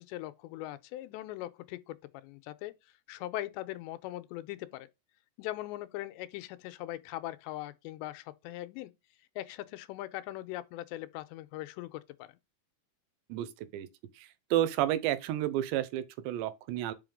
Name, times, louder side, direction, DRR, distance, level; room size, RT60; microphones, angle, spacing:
voice 1, 0.0-2.7 3.1-4.9 5.4-8.9 9.4-12.4, left 15 dB, 85° left, 2.9 m, -40 dB
voice 2, 13.3-13.9 14.2-16.9, right 13 dB, 85° right, 3.1 m, -31 dB
6.0 x 5.7 x 5.2 m
omnidirectional pair, 5.1 m